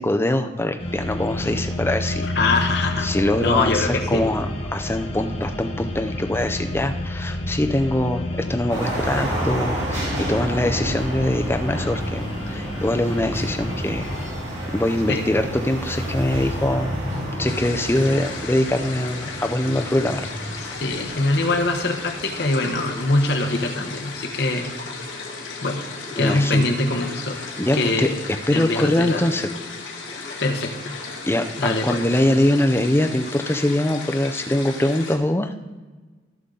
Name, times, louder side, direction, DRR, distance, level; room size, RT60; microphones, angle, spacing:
voice 1, 0.0-2.3 3.0-4.5 4.7-14.1 14.7-16.9 17.4-20.2 26.2-26.7 27.3-28.1 28.5-29.5 31.2-35.5, left 1 dB, 10° left, 6 dB, 0.5 m, -23 dB
sound 1, 0.8-14.3, left 1 dB, 30° left, 1.1 m, -29 dB
voice 2, 2.2-3.1 3.4-4.2 15.1-15.3 20.6-24.7 25.6-25.8 26.2-27.4 27.7-28.2 28.5-29.2 30.4-31.0 31.6-32.0, left 2 dB, 60° left, 3 dB, 1.1 m, -23 dB
sound 2, 8.7-23.5, equal, 70° right, 3.4 m, -31 dB
sound 3, 17.4-35.2, left 4 dB, 80° left, 1.7 m, -35 dB
15.0 x 5.7 x 3.8 m, 1.3 s
head